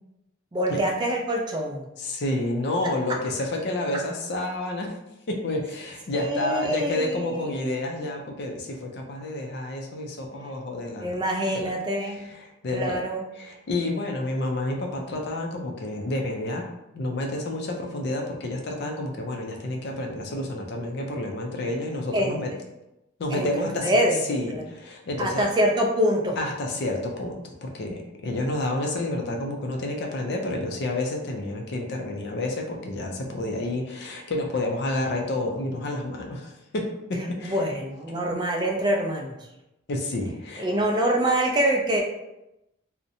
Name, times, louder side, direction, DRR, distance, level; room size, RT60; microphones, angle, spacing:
voice 1, 0.5-1.9 6.1-7.5 11.0-12.2 12.7-13.2 22.1-22.4 23.3-24.2 24.5-24.6 25.2-26.4 37.4-39.4 40.6-42.0, right 1 dB, 20° right, 0 dB, 0.3 m, -25 dB
voice 2, 2.0-4.9 5.3-11.2 11.5-11.7 12.0-13.0 13.4-16.6 16.9-22.5 23.2-24.0 24.3-25.4 26.4-36.8 37.1-37.6 38.1-38.2 39.9-40.7, left 2 dB, 55° left, 2 dB, 0.4 m, -29 dB
2.5 x 2.1 x 2.7 m, 0.91 s
head